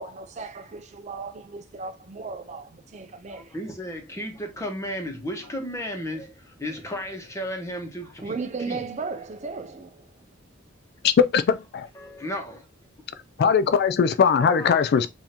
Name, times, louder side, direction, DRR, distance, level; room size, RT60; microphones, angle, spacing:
voice 1, 0.0-3.6 8.2-10.1, right 4 dB, 35° right, 0.4 m, -35 dB
voice 2, 3.3-8.8 11.9-12.6 14.4-14.8, equal, 15° left, 1.1 m, -34 dB
voice 3, 11.0-11.9 13.4-15.1, left 6 dB, 55° left, 0.3 m, -20 dB
7.0 x 2.6 x 2.8 m
head